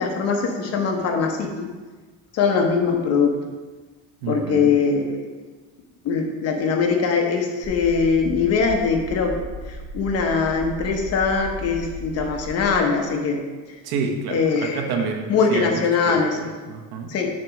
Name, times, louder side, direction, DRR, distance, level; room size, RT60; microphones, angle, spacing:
voice 1, 0.0-1.7 2.3-3.4 4.3-5.2 6.0-9.4 9.7-13.4 14.3-15.0 15.3-16.4 17.1-17.3, left 5 dB, 40° left, 2 dB, 0.9 m, -22 dB
voice 2, 4.2-4.7 13.8-17.1, right 5 dB, 65° right, 3 dB, 1.1 m, -29 dB
sound 1, 7.6-12.7, right 1 dB, ahead, 1.3 m, -36 dB
7.6 x 3.0 x 5.8 m, 1.3 s
cardioid pair, 160°, 40 cm